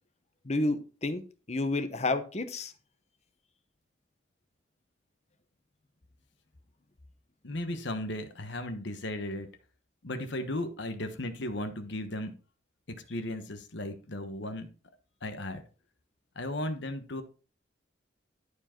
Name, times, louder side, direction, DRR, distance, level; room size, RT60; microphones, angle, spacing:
voice 1, 0.5-2.7, left 2 dB, 35° left, 0.8 m, -30 dB
voice 2, 7.4-9.5 10.0-12.3 12.9-14.7 15.2-15.6 16.3-17.2, left 1 dB, 65° left, 1.1 m, -35 dB
11.5 x 4.9 x 4.4 m
head